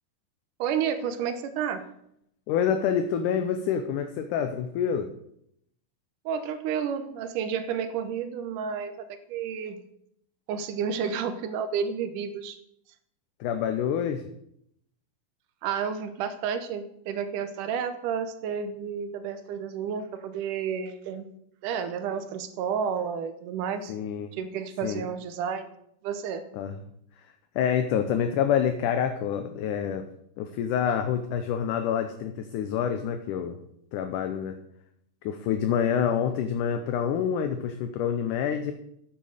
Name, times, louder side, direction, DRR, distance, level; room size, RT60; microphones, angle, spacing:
voice 1, 0.6-1.8 6.3-9.8 10.5-12.6 15.6-21.3 21.6-23.9 24.4-25.7 26.0-26.5, right 7 dB, 75° right, 10 dB, 2.2 m, -31 dB
voice 2, 2.5-5.1 13.4-14.3 23.9-24.3 24.8-25.1 26.5-26.8 27.2-30.1 30.4-33.6 33.9-34.6 35.2-38.7, left 8 dB, 75° left, 7 dB, 2.0 m, -27 dB
9.1 x 7.9 x 6.5 m, 0.74 s
omnidirectional pair, 4.1 m